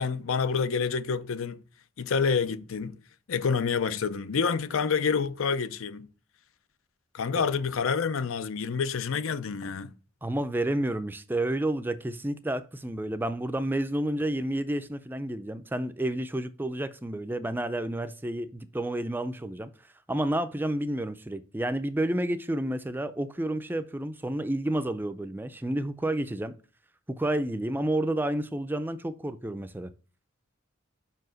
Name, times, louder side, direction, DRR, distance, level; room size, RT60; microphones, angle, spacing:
voice 1, 0.0-1.6 2.0-3.0 3.3-6.1 7.1-9.9, left 5 dB, 75° left, 0.5 m, -28 dB
voice 2, 10.2-19.7 20.1-26.5 27.1-29.9, right 1 dB, 10° right, 0.4 m, -30 dB
5.7 x 4.7 x 6.2 m
head